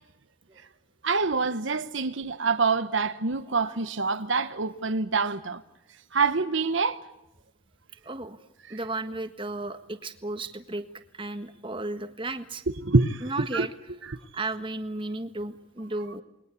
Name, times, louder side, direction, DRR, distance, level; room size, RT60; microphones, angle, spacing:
voice 1, 1.0-5.6 6.1-7.0 8.7-8.8 12.8-13.7 14.1-14.2, right 4 dB, 65° right, 1.1 m, -26 dB
voice 2, 8.0-10.9 11.1-12.6 13.2-13.7 14.3-16.2, right 2 dB, 25° right, 1.5 m, -34 dB
29.0 x 21.5 x 8.4 m
head